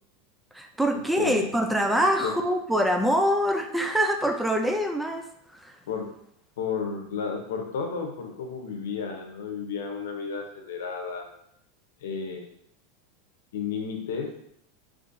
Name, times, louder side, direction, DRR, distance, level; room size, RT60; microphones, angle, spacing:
voice 1, 0.5-5.3 5.6-5.7, equal, 5° right, 4 dB, 0.4 m, -24 dB
voice 2, 1.2-1.5 2.2-2.3 5.9-6.1 6.6-11.3 12.0-12.5 13.5-14.3, left 6 dB, 90° left, 3 dB, 0.7 m, -32 dB
3.7 x 3.1 x 2.6 m, 0.73 s
supercardioid pair, 140°, 0 cm